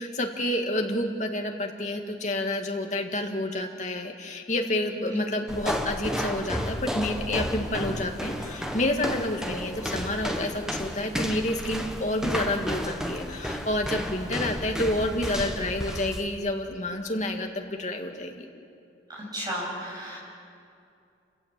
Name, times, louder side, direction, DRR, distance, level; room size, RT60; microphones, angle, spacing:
voice 1, 0.0-18.5, left 1 dB, 40° left, 3 dB, 2.0 m, -29 dB
sound 1, 5.5-16.2, equal, 5° right, 1.3 m, -32 dB
voice 2, 19.1-20.2, equal, 20° right, -4 dB, 7.5 m, -33 dB
28.5 x 17.0 x 7.6 m, 2.5 s
head